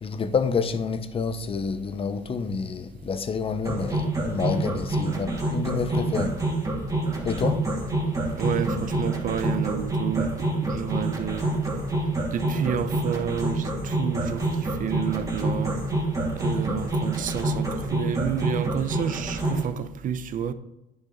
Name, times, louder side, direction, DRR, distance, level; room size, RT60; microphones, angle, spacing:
voice 1, 0.0-6.4 7.2-7.6, left 5 dB, 35° left, 0.9 m, -28 dB
sound 1, 3.6-19.6, right 2 dB, 20° right, 2.6 m, -27 dB
voice 2, 8.4-10.3 10.6-11.5 12.3-15.8 16.3-20.5, right 8 dB, 50° right, 0.8 m, -30 dB
10.0 x 6.2 x 3.9 m
cardioid pair, 110°, 17 cm